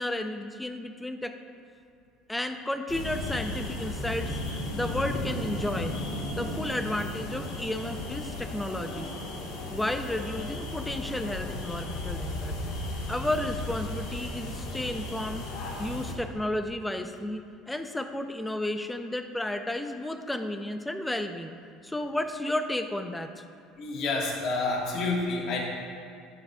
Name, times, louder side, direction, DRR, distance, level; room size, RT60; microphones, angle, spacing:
voice 1, 0.0-1.4 2.3-6.0 6.4-9.1 9.7-12.5 13.1-21.6 21.8-23.4, left 1 dB, 10° left, 7 dB, 0.5 m, -32 dB
sound 1, 2.9-16.1, left 1 dB, 85° left, 1.4 m, -35 dB
voice 2, 23.8-25.6, left 3 dB, 60° left, -2 dB, 1.5 m, -29 dB
11.5 x 7.2 x 2.3 m, 2.4 s
supercardioid pair, 105°, 0 cm